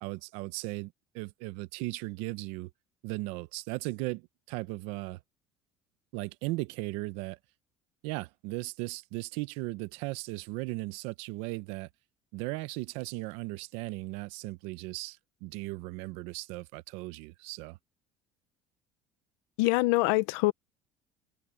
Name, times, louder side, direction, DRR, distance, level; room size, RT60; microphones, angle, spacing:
voice 1, 0.0-2.7 3.0-5.2 6.1-7.4 8.0-11.9 12.3-17.8, right 21 dB, 80° right, 1.0 m, -37 dB
voice 2, 19.6-20.5, left 21 dB, 85° left, 1.0 m, -24 dB
cardioid pair, 110°, 10 cm